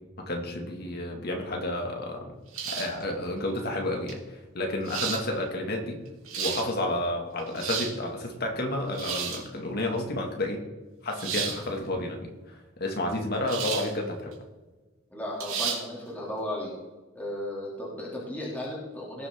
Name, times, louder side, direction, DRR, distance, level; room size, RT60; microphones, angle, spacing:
voice 1, 0.2-2.3 2.7-6.0 6.4-10.6 11.0-14.3, left 1 dB, 50° left, 2 dB, 2.3 m, -31 dB
sound 1, 2.5-3.0 4.1-4.2 4.8-5.2 6.1-6.6 7.4-7.9 8.9-9.4 11.2-11.6 13.5-13.9 14.3-14.4 15.4-15.8, right 7 dB, 85° right, 3.1 m, -32 dB
voice 2, 15.1-16.7 17.1-19.3, left 1 dB, 10° left, -5 dB, 3.0 m, -35 dB
19.0 x 7.5 x 3.8 m, 1.2 s
head